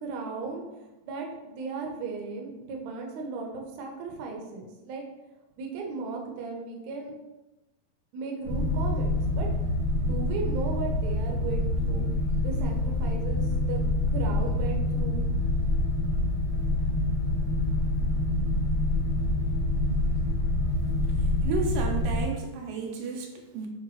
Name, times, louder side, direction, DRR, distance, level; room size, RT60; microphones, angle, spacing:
voice 1, 0.0-0.6 1.0-5.0 5.6-7.1 8.1-9.5 10.0-12.1 12.4-13.8 14.1-15.2, right 4 dB, 65° right, 1 dB, 1.9 m, -36 dB
sound 1, 8.5-22.2, left 1 dB, 50° left, 1.2 m, -26 dB
voice 2, 21.4-23.7, right 4 dB, 80° right, 1 dB, 2.4 m, -32 dB
9.1 x 3.6 x 3.1 m, 1.0 s
omnidirectional pair, 4.0 m